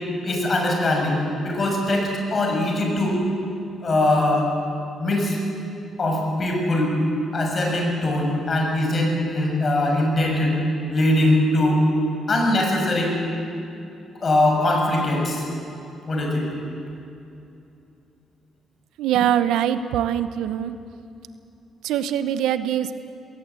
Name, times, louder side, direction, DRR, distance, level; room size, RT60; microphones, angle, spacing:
voice 1, 0.2-3.2 3.8-4.5 5.0-5.4 6.0-7.0 7.3-10.6 10.9-11.9 12.3-13.2 14.2-15.4 16.1-16.5, left 1 dB, 40° left, 1 dB, 6.7 m, -21 dB
voice 2, 19.0-20.8 21.8-23.0, right 10 dB, 90° right, 11 dB, 0.9 m, -23 dB
21.0 x 18.5 x 8.4 m, 2.7 s
cardioid pair, 90°, 0 cm